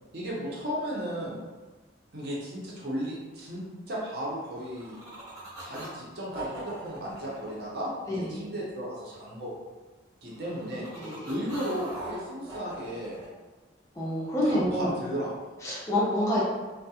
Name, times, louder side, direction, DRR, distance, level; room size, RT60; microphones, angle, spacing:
voice 1, 0.1-1.4 2.1-5.0 5.6-9.5 10.2-10.9 11.2-13.2 14.4-15.5, equal, 55° right, -5 dB, 0.7 m, -35 dB
sound 1, 4.4-5.9 6.3-8.5 10.3-13.3, right 1 dB, 20° right, 0.9 m, -42 dB
voice 2, 8.1-8.4 11.0-11.3 14.0-14.9 15.6-16.4, left 1 dB, 15° left, -7 dB, 0.4 m, -27 dB
2.3 x 2.1 x 2.7 m, 1.3 s
head